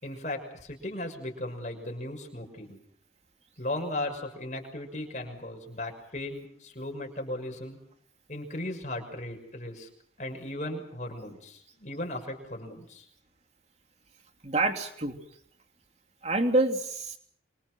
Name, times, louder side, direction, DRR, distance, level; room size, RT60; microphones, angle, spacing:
voice 1, 0.0-2.8 3.6-7.8 8.3-9.9 10.2-13.1, left 1 dB, 40° left, 3 dB, 6.3 m, -37 dB
voice 2, 14.4-15.2 16.2-17.2, right 2 dB, 35° right, 5 dB, 3.0 m, -26 dB
26.5 x 26.5 x 6.3 m, 0.65 s
head